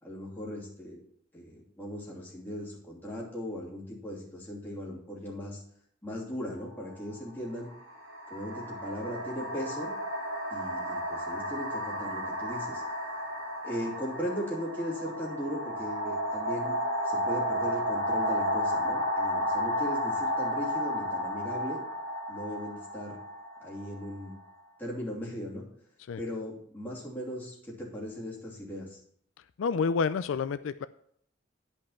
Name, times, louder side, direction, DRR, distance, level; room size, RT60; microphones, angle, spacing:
voice 1, 0.0-1.0 1.3-5.6 6.0-7.7 8.3-9.9 10.5-12.8 13.6-16.8 17.0-21.8 22.3-23.2 23.6-24.3 24.8-25.6 26.2-29.0, equal, 10° left, -6 dB, 2.9 m, -38 dB
sound 1, 6.6-6.8 7.7-24.4, equal, 70° right, 4.3 m, -32 dB
voice 2, 29.6-30.9, left 5 dB, 75° left, 14 dB, 0.4 m, -28 dB
10.5 x 5.4 x 5.7 m, 0.64 s
head